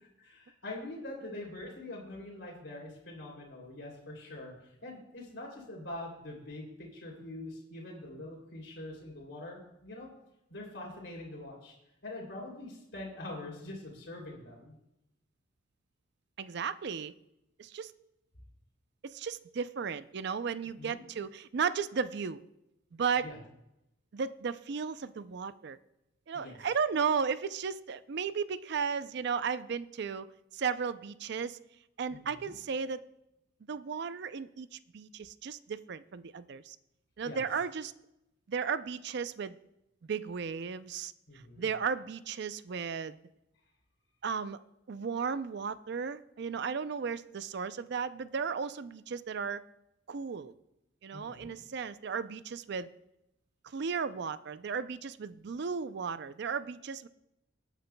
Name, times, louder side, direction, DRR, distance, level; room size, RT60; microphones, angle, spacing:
voice 1, 0.2-4.5 4.8-10.1 10.5-11.7 12.0-14.7 20.8-21.1 23.2-23.4 26.3-26.6 32.1-32.5 37.2-37.4 41.3-41.7 51.1-51.5, left 2 dB, 75° left, -2 dB, 3.0 m, -44 dB
voice 2, 16.4-17.1 17.6-17.9 19.0-22.4 22.9-23.3 24.1-25.8 26.3-31.6 32.0-33.0 33.7-36.8 37.2-37.9 38.5-39.6 40.1-41.1 41.6-43.2 44.2-44.6 44.9-49.6 50.1-50.5 51.0-52.9 53.7-57.1, right 6 dB, 65° right, 14 dB, 0.4 m, -35 dB
19.5 x 9.1 x 2.2 m, 0.88 s
head